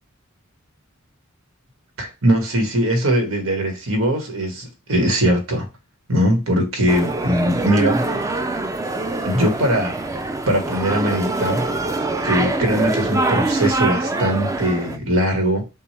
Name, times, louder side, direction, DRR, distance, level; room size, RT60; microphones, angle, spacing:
voice 1, 2.0-5.7 6.1-8.0 9.2-11.7 12.2-15.7, equal, 90° right, 1.4 m, -21 dB
sound 1, 6.9-15.0, right 2 dB, 15° right, 0.4 m, -24 dB
6.0 x 2.2 x 3.2 m
head